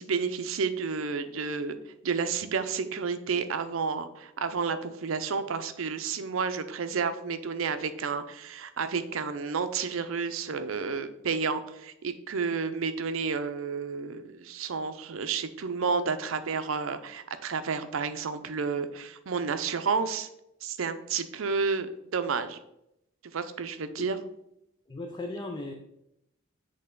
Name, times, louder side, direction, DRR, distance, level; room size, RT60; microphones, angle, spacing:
voice 1, 0.0-1.8 2.0-20.3 20.6-22.6 23.2-24.2, right 5 dB, 75° right, 10 dB, 0.5 m, -31 dB
voice 2, 24.9-25.7, left 2 dB, 20° left, 3 dB, 0.4 m, -36 dB
7.8 x 3.3 x 3.8 m, 0.82 s
head